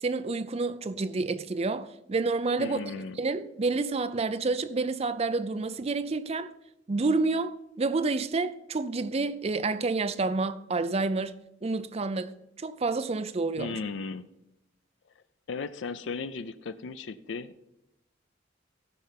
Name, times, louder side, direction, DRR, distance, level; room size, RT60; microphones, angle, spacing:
voice 1, 0.0-2.8 3.2-6.5 6.9-11.4 11.6-13.8, right 3 dB, 35° right, 0.5 m, -29 dB
voice 2, 2.6-3.2 13.6-14.2 15.5-17.6, left 4 dB, 75° left, 0.5 m, -36 dB
13.5 x 5.6 x 5.7 m
head